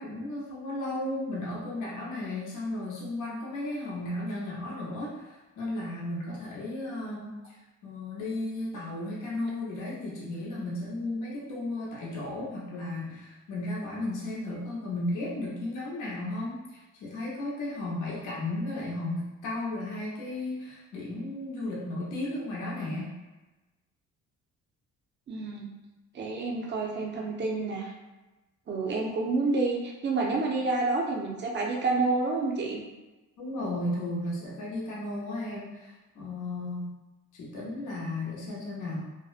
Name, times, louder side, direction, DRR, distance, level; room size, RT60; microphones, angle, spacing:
voice 1, 0.0-7.5 7.8-23.1 33.4-36.9 37.3-39.1, left 1 dB, 80° left, -5 dB, 0.7 m, -34 dB
voice 2, 25.3-25.7 26.1-27.9 28.7-32.8, right 3 dB, 35° right, -1 dB, 0.5 m, -29 dB
2.6 x 2.0 x 2.4 m, 1.1 s
cardioid pair, 90°, 30 cm